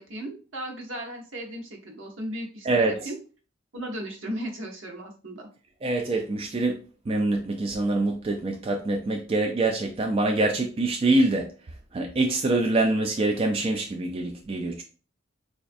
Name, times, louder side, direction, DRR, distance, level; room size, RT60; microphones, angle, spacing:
voice 1, 0.0-3.2 3.7-5.5, right 1 dB, 65° right, 0.9 m, -36 dB
voice 2, 2.6-3.1 5.8-11.5 11.9-14.8, right 2 dB, 30° right, 0.3 m, -25 dB
4.3 x 2.4 x 2.5 m
head